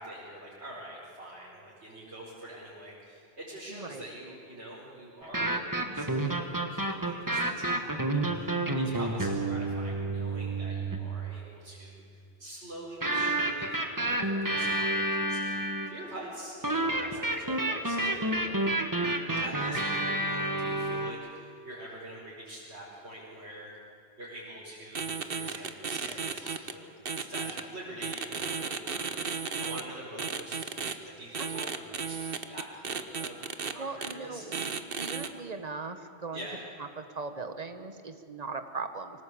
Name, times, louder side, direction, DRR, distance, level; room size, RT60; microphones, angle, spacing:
voice 1, 0.0-18.8 19.4-23.8 24.2-32.2 32.4-34.5 36.3-36.6, right 1 dB, 85° right, -9 dB, 5.3 m, -45 dB
voice 2, 3.7-4.0 31.4-31.8 33.6-36.4 37.0-39.2, right 4 dB, 40° right, 9 dB, 1.4 m, -39 dB
sound 1, 5.2-11.1 13.0-16.0 16.6-21.1, right 1 dB, 20° right, 1.6 m, -29 dB
sound 2, 25.0-26.7 27.1-27.6 28.0-29.8 30.2-30.9 31.3-33.7 34.0-34.1 34.5-35.3, right 5 dB, 60° right, 1.3 m, -34 dB
24.5 x 18.5 x 8.6 m, 2.5 s
omnidirectional pair, 1.1 m